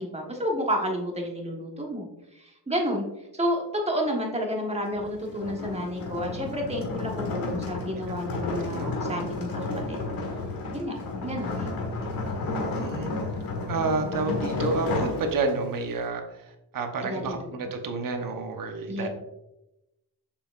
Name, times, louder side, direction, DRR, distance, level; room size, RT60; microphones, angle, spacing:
voice 1, 0.0-3.0 3.3-10.0 10.7-10.9 11.2-11.7 17.0-17.4 18.9-19.1, equal, 15° right, 0 dB, 1.4 m, -30 dB
sound 1, 4.9-15.8, left 3 dB, 55° left, 1.6 m, -32 dB
voice 2, 12.8-13.1 13.7-19.1, right 4 dB, 55° right, 4 dB, 1.1 m, -30 dB
6.8 x 5.7 x 2.5 m, 0.91 s
cardioid pair, 115°, 40 cm